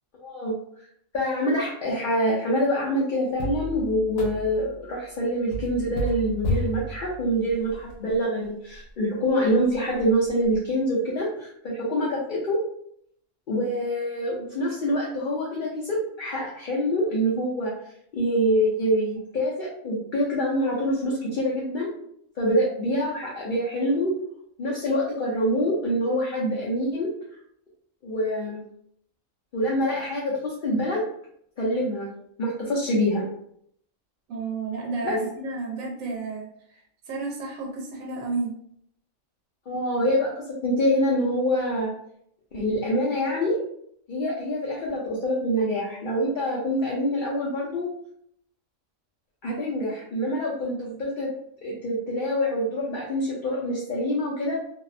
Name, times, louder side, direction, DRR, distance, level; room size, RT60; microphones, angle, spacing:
voice 1, 0.2-0.5 1.1-12.6 13.5-17.7 18.1-21.9 22.4-24.1 24.6-27.1 28.0-28.6 29.5-31.0 31.6-32.1 32.4-33.2 35.0-35.2 39.7-41.9 42.5-43.6 44.1-47.9 49.4-51.3 51.6-54.6, equal, 60° left, -5 dB, 0.5 m, -25 dB
sound 1, 3.4-4.8 5.5-8.2 8.7-8.8 9.3-9.4 9.7-10.6, equal, 85° left, 1.0 m, -32 dB
voice 2, 34.3-36.8 37.1-38.5, right 3 dB, 80° right, -1 dB, 1.0 m, -31 dB
2.7 x 2.0 x 2.5 m, 0.69 s
omnidirectional pair, 1.4 m